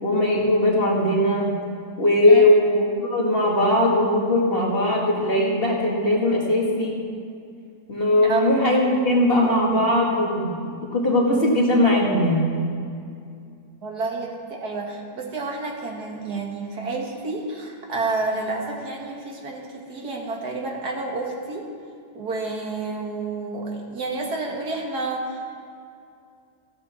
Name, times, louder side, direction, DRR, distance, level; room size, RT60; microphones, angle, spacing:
voice 1, 0.0-1.5 2.0-7.0 7.9-10.5 10.8-12.5, left 1 dB, 35° left, -3 dB, 2.2 m, -19 dB
voice 2, 13.8-21.7 22.1-25.4, right 3 dB, 80° right, 0 dB, 2.3 m, -29 dB
15.5 x 12.0 x 4.4 m, 2.4 s
omnidirectional pair, 1.6 m